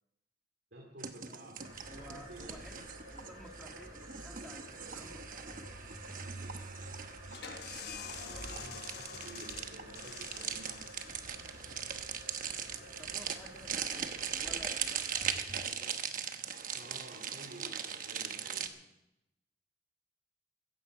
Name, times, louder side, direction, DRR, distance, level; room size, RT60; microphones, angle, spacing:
voice 1, 0.7-2.6 8.1-11.5 16.7-18.9, right 1 dB, 75° right, 0 dB, 2.6 m, -52 dB
sound 1, 1.0-18.7, right 7 dB, 50° right, 1.1 m, -40 dB
sound 2, 1.6-15.6, right 1 dB, 25° right, 4.9 m, -50 dB
voice 2, 1.8-6.3 13.0-16.0, equal, ahead, 2 dB, 1.7 m, -55 dB
sound 3, 7.3-12.7, left 7 dB, 65° left, 1.1 m, -48 dB
16.0 x 15.0 x 4.9 m, 0.89 s
head